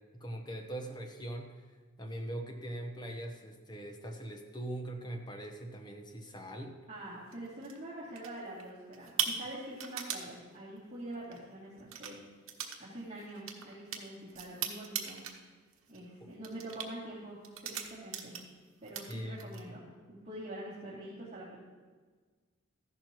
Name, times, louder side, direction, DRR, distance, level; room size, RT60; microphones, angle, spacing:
voice 1, 0.1-1.7 2.0-6.8 19.1-19.6, right 1 dB, 20° left, 3 dB, 1.1 m, -41 dB
voice 2, 6.9-12.2 12.8-15.2 15.9-18.4 18.8-21.6, right 1 dB, 30° right, -11 dB, 2.7 m, -45 dB
sound 1, 7.3-7.8 8.2-8.6 8.9-10.3 11.2-11.4 11.8-12.1 12.5-12.8 13.0-15.4 15.7-16.0 16.4-16.9 17.4-18.6 18.8-19.6, right 8 dB, 70° right, 1.2 m, -38 dB
14.0 x 11.5 x 3.1 m, 1.4 s
head